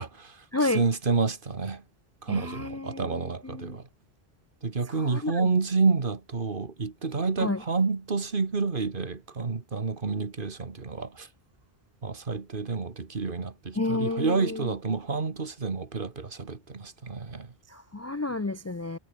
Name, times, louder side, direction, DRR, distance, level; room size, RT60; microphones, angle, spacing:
voice 1, 0.0-1.8 2.2-3.9 4.6-11.3 12.0-17.5, right 4 dB, 55° right, 1.8 m, -29 dB
voice 2, 0.5-0.8 2.3-3.8 5.0-5.5 7.4-7.6 13.8-14.7 17.7-19.0, left 2 dB, 25° left, 0.4 m, -31 dB
omnidirectional pair, 1.1 m